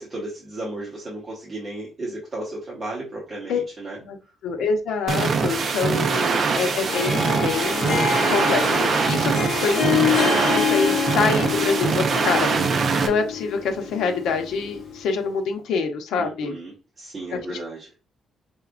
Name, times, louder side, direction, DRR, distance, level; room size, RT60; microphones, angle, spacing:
voice 1, 0.0-4.0 16.2-17.9, right 2 dB, 25° right, -7 dB, 1.3 m, -34 dB
voice 2, 4.4-12.5 13.0-16.6 17.3-17.6, left 5 dB, 85° left, 5 dB, 0.9 m, -26 dB
sound 1, 5.1-13.1, right 5 dB, 40° right, 0.6 m, -23 dB
Harp, 6.8-15.1, left 5 dB, 45° left, 1.1 m, -26 dB
4.6 x 3.4 x 2.5 m, 0.31 s
cardioid pair, 175°, 0 cm